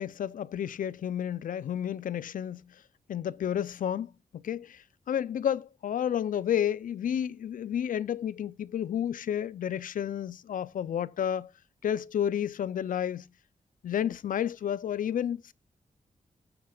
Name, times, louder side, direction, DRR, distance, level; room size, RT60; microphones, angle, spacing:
voice 1, 0.0-2.8 3.1-11.5 11.8-13.3 13.8-15.5, left 9 dB, 80° left, 0.4 m, -31 dB
19.0 x 7.6 x 2.3 m
wide cardioid pair, 130°, 14 cm